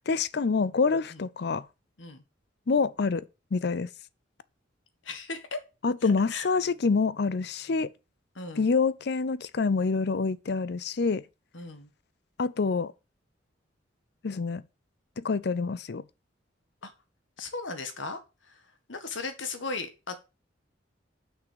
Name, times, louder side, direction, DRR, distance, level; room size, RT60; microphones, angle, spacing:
voice 1, 0.1-1.7 2.7-3.2 3.5-3.9 5.8-7.9 8.6-11.2 12.4-12.9 14.2-14.6 15.2-16.0, left 4 dB, 60° left, 0.5 m, -26 dB
voice 2, 5.0-5.6 6.0-6.5 8.4-8.7 11.5-11.9 16.8-16.9 17.4-18.2 18.5-18.6 18.9-20.1, left 3 dB, 80° left, 1.8 m, -37 dB
6.5 x 6.1 x 6.9 m
head